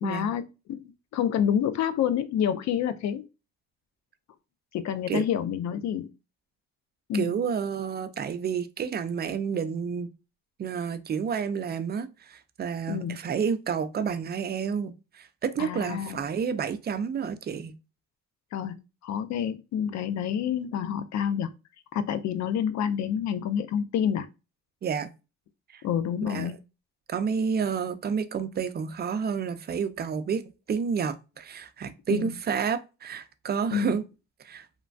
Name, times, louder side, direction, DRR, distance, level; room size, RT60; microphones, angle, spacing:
voice 1, 0.0-0.4 0.7-3.2 4.7-6.1 7.1-7.4 12.9-13.2 15.6-16.2 18.5-18.7 19.0-21.5 21.9-24.3 25.8-26.5 32.1-32.3 33.7-34.0, left 9 dB, 65° left, 0.4 m, -28 dB
voice 2, 7.1-10.1 10.6-17.7 24.8-25.1 25.7-25.8 26.3-26.6 27.1-34.0 34.4-34.7, right 6 dB, 35° right, 0.4 m, -30 dB
3.1 x 2.2 x 2.5 m
cardioid pair, 90°, 30 cm